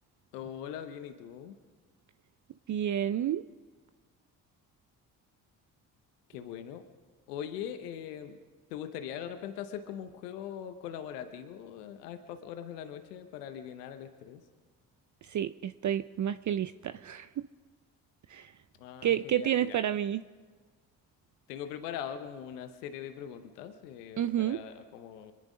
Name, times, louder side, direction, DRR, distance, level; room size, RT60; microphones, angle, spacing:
voice 1, 0.3-1.5 6.3-6.8 7.3-8.4 8.7-14.4 18.8-19.8 21.5-25.3, left 9 dB, 85° left, 8 dB, 0.9 m, -41 dB
voice 2, 2.7-3.4 15.2-17.4 18.3-18.5 19.0-20.2 24.2-24.6, right 10 dB, 40° right, 13 dB, 0.5 m, -30 dB
25.5 x 10.5 x 5.1 m, 1.5 s
hypercardioid pair, 45°, 46 cm